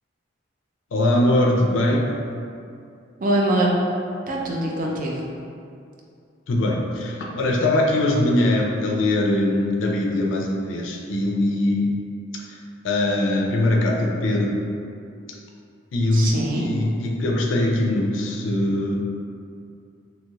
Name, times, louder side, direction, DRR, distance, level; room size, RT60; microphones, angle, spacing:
voice 1, 0.9-2.1 6.5-11.9 12.5-12.6 12.8-14.6 15.9-16.3 16.6-18.9, left 1 dB, 70° left, -1 dB, 0.4 m, -21 dB
voice 2, 3.2-3.9 4.3-5.3 16.1-16.7, right 1 dB, 40° right, -2 dB, 0.4 m, -23 dB
3.0 x 2.9 x 2.3 m, 2.4 s
head